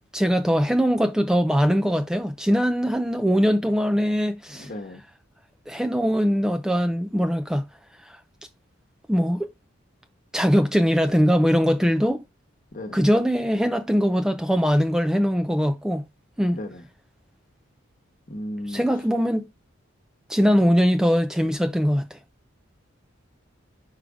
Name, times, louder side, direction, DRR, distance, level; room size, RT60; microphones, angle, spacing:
voice 1, 0.1-4.7 5.7-7.6 8.0-8.2 9.1-9.5 10.3-12.2 12.9-16.0 16.4-16.6 18.7-19.4 20.3-22.2, equal, 5° right, 0.4 m, -21 dB
voice 2, 4.5-5.0 12.7-13.0 16.5-16.9 18.3-18.8, left 1 dB, 45° left, 1.2 m, -35 dB
5.0 x 4.8 x 4.9 m
head